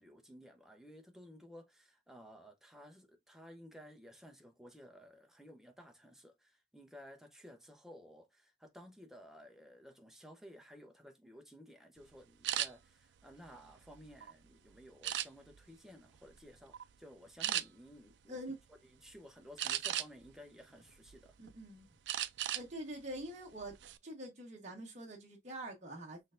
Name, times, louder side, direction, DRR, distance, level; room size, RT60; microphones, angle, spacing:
voice 1, 0.0-18.4 18.9-21.4, equal, ahead, 0.7 m, -55 dB
sound 1, 12.4-12.7 13.3-14.3 15.0-15.6 16.1-16.4 16.7-16.9 17.4-17.6 19.6-20.3 20.8-21.5 22.1-22.7 23.0-23.2 23.6-24.0, right 12 dB, 70° right, 0.4 m, -36 dB
voice 2, 21.4-21.9 22.5-23.8 24.0-26.2, right 1 dB, 40° right, 1.2 m, -45 dB
6.2 x 3.3 x 2.5 m
head